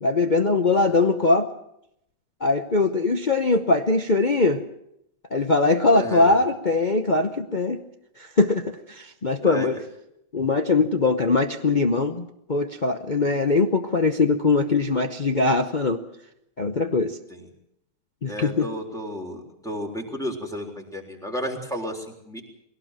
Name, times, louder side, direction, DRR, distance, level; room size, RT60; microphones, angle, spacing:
voice 1, 0.0-1.5 2.4-4.6 5.3-7.8 8.2-9.7 10.3-16.0 16.6-17.2 18.2-18.7, left 3 dB, 60° left, 5 dB, 0.5 m, -21 dB
voice 2, 0.7-1.1 5.9-6.4 9.4-9.7 17.3-17.5 18.3-22.4, equal, ahead, 2 dB, 3.6 m, -33 dB
21.5 x 17.5 x 7.4 m, 0.78 s
omnidirectional pair, 2.2 m